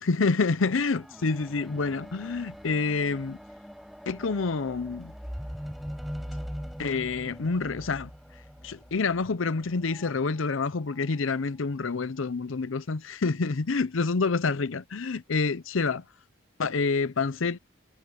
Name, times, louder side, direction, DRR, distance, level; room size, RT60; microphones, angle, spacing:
voice 1, 0.1-3.4 4.1-5.1 6.8-8.1 8.6-16.0 16.6-17.6, left 4 dB, 85° left, 0.7 m, -27 dB
sound 1, 0.6-10.1 10.9-11.0, equal, ahead, 0.3 m, -41 dB
head